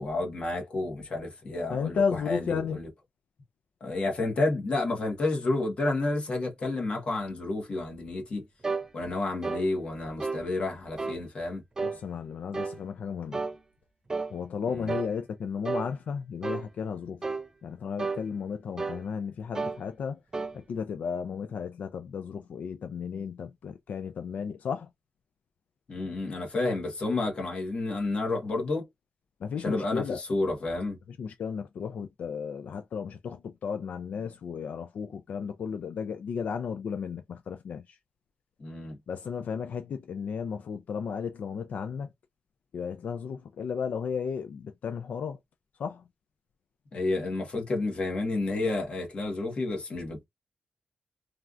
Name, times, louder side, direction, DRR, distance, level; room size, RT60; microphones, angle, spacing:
voice 1, 0.0-2.9 3.8-8.4 8.9-11.6 14.7-14.9 25.9-28.9 29.6-31.0 38.6-39.0 46.9-50.2, left 2 dB, 45° left, 1.2 m, -30 dB
voice 2, 1.7-2.8 11.8-13.4 14.3-17.2 17.6-20.2 20.5-24.9 29.4-30.2 31.1-38.0 39.1-42.1 42.7-45.4 45.8-46.1, left 6 dB, 80° left, 0.3 m, -34 dB
sound 1, 8.6-8.9 9.4-9.7 10.2-10.4 11.0-11.2 11.8-12.0 12.5-12.8 13.3-13.6 14.1-14.3 14.9-15.1 15.6-15.9 16.4-16.7 17.2-17.5 18.0-18.2 18.8-19.0 19.5-19.8 20.3-20.5, right 4 dB, 25° right, 0.4 m, -32 dB
3.2 x 2.4 x 2.5 m
wide cardioid pair, 170°, 3 cm